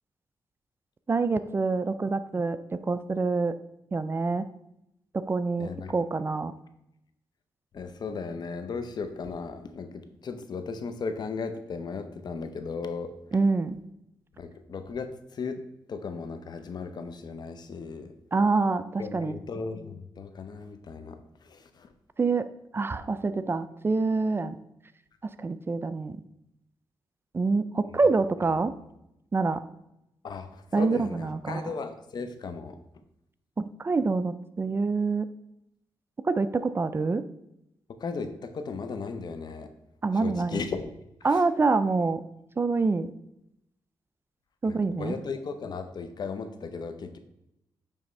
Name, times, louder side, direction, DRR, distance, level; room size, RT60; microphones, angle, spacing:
voice 1, 1.1-3.5 3.9-4.5 5.1-6.5 13.3-13.8 18.3-19.4 22.2-22.5 22.7-24.6 25.2-26.2 27.3-28.7 29.3-29.6 30.7-31.7 33.6-35.3 36.3-37.2 40.0-40.7 41.2-42.2 42.6-43.1 44.6-45.2, right 3 dB, 25° right, 12 dB, 0.3 m, -26 dB
voice 2, 5.6-5.9 7.7-13.1 14.4-15.6 15.9-18.1 19.0-21.2 21.4-21.9 30.2-32.8 38.0-39.7 40.1-40.9 41.3-41.4 44.6-47.2, left 4 dB, 55° left, 9 dB, 0.6 m, -36 dB
9.1 x 3.5 x 3.2 m, 0.84 s
cardioid pair, 80°, 9 cm